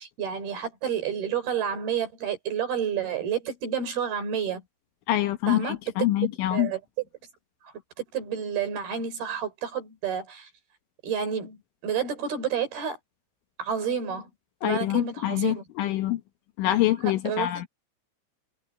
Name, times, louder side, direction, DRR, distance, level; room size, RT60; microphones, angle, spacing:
voice 1, 0.0-4.6 5.5-5.8 6.5-6.8 8.1-10.5 11.0-11.6 11.8-13.0 13.6-14.3 14.6-15.6 17.0-17.7, right 7 dB, 50° right, 5.4 m, -30 dB
voice 2, 5.1-6.7 14.6-16.2 16.6-17.7, left 14 dB, 75° left, 3.4 m, -25 dB
omnidirectional pair, 5.9 m